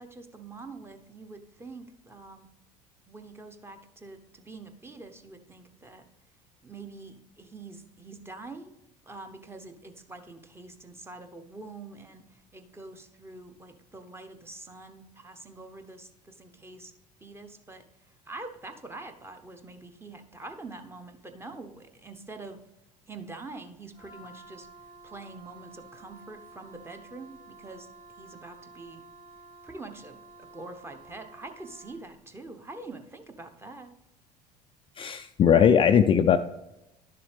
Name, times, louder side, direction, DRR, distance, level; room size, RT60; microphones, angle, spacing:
voice 1, 0.0-2.5 3.1-6.0 6.6-8.8 9.1-12.2 12.5-16.9 17.2-17.8 18.3-22.6 23.1-24.7 25.0-27.9 28.2-29.0 29.6-33.9, right 3 dB, 10° right, 6 dB, 0.9 m, -45 dB
Wind instrument woodwind instrument, 23.9-32.1, right 3 dB, 85° right, 3.7 m, -51 dB
voice 2, 35.0-36.4, left 8 dB, 25° left, 8 dB, 0.3 m, -19 dB
11.5 x 6.9 x 3.3 m, 0.93 s
figure-of-eight pair, 65°, 21 cm